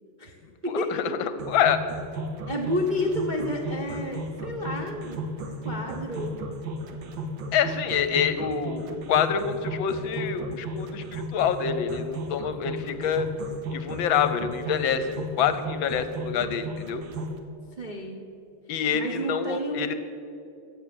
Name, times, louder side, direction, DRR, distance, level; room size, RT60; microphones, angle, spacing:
voice 1, 0.7-1.8 7.5-13.3 13.7-17.0 18.7-19.9, left 7 dB, 70° left, 11 dB, 1.3 m, -26 dB
sound 1, 1.4-17.4, right 2 dB, 65° right, 1.7 m, -35 dB
voice 2, 2.5-6.4 17.8-18.2 18.9-19.9, equal, 40° right, 0 dB, 0.6 m, -30 dB
15.0 x 8.6 x 6.9 m, 2.7 s
omnidirectional pair, 2.4 m